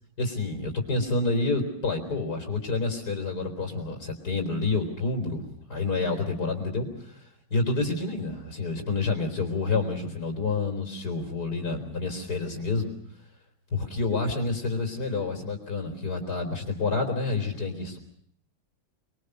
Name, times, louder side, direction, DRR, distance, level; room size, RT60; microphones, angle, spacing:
voice 1, 0.2-12.9 13.7-18.0, left 3 dB, 50° left, 2 dB, 4.2 m, -28 dB
26.5 x 22.0 x 6.6 m, 0.64 s
omnidirectional pair, 2.2 m